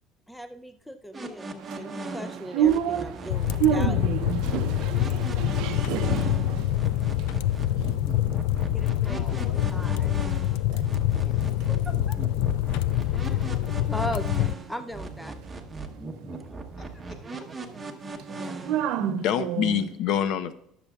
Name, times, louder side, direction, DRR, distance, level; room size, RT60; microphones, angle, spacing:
voice 1, 0.3-4.0 8.7-10.3 11.7-12.2 13.0-13.6 13.9-15.3 18.3-18.6, equal, ahead, 9 dB, 0.4 m, -38 dB
sound 1, 1.1-18.9, right 3 dB, 15° right, 0.9 m, -38 dB
sound 2, 1.6-8.7 9.1-10.1 10.4-20.0, right 10 dB, 65° right, 0.5 m, -32 dB
sound 3, 3.3-14.5, left 13 dB, 85° left, 0.3 m, -26 dB
voice 2, 9.1-11.5 16.8-17.5, left 3 dB, 40° left, 2 dB, 1.5 m, -49 dB
voice 3, 18.9-20.5, left 9 dB, 60° left, 12 dB, 0.7 m, -26 dB
20.0 x 6.9 x 2.3 m, 0.73 s
cardioid pair, 160°, 0 cm